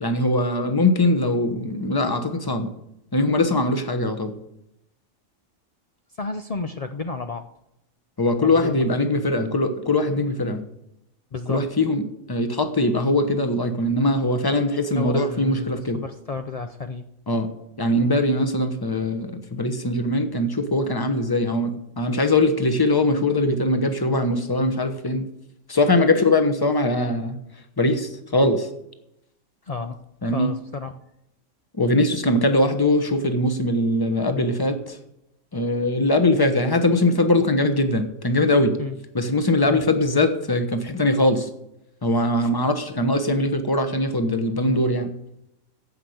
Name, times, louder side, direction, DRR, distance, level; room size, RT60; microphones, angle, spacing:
voice 1, 0.0-2.7 3.1-4.3 8.2-10.6 11.5-16.0 17.3-17.5 17.8-25.2 25.7-27.4 27.8-28.7 30.2-30.5 31.8-35.0 35.5-38.8 39.1-41.5 42.0-45.1, left 1 dB, 20° left, 8 dB, 1.0 m, -21 dB
voice 2, 6.2-7.4 8.4-8.8 11.3-11.6 15.0-17.0 29.7-30.0 30.2-30.9 38.8-39.0 39.6-39.9, left 4 dB, 55° left, 7 dB, 0.4 m, -31 dB
15.0 x 5.7 x 7.9 m, 0.82 s
omnidirectional pair, 1.5 m